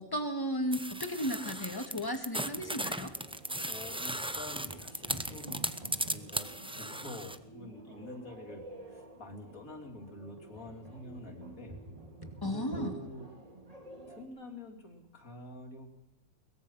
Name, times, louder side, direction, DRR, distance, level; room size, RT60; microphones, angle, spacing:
voice 1, 0.0-3.1 12.4-13.0, equal, 15° left, 6 dB, 2.0 m, -34 dB
sound 1, 0.7-7.4, right 1 dB, 10° right, 0.3 m, -37 dB
sound 2, 2.5-14.3, right 2 dB, 25° right, 2.6 m, -48 dB
voice 2, 3.7-5.6 6.0-11.8 12.5-13.3 14.1-15.9, left 1 dB, 65° left, 3 dB, 3.8 m, -47 dB
22.5 x 20.5 x 5.7 m, 0.90 s
omnidirectional pair, 1.6 m